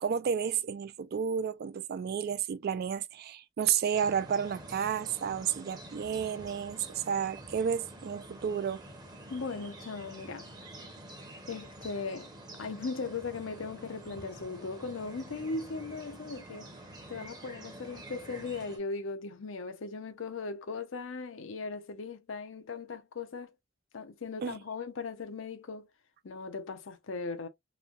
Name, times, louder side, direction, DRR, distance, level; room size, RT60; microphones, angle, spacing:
voice 1, 0.0-8.8 24.4-24.6, right 7 dB, 50° right, 0.3 m, -31 dB
sound 1, 3.9-18.8, right 1 dB, 20° right, 0.7 m, -48 dB
voice 2, 9.3-10.5 11.5-12.3 12.6-16.7 17.1-23.5 23.9-25.9 26.2-27.5, left 4 dB, 70° left, 0.6 m, -38 dB
3.0 x 2.1 x 2.4 m
head